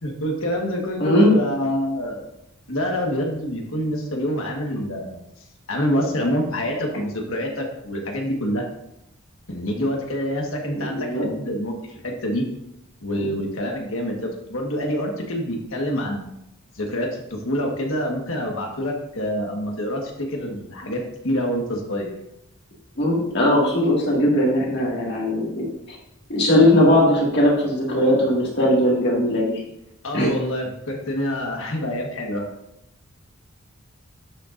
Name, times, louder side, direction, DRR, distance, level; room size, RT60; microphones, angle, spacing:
voice 1, 0.0-2.3 2.7-5.2 5.7-8.6 9.5-12.4 13.0-16.2 16.7-22.1 30.0-32.5, equal, 70° left, 1 dB, 1.6 m, -26 dB
voice 2, 1.0-1.4 10.8-11.3 13.1-13.2 23.0-25.7 26.3-29.6 30.1-30.3, left 1 dB, 50° left, -3 dB, 2.1 m, -19 dB
11.5 x 6.8 x 2.6 m, 0.84 s
head